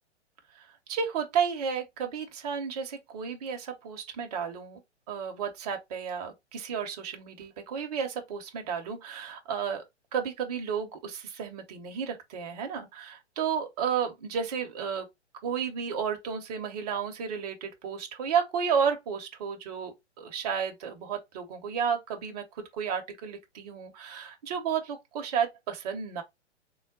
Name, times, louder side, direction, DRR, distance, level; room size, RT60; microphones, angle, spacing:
voice 1, 0.5-4.8 5.1-9.8 10.1-15.1 15.4-26.2, right 7 dB, 35° right, 0.8 m, -32 dB
3.7 x 2.1 x 3.6 m
figure-of-eight pair, 120°, 35 cm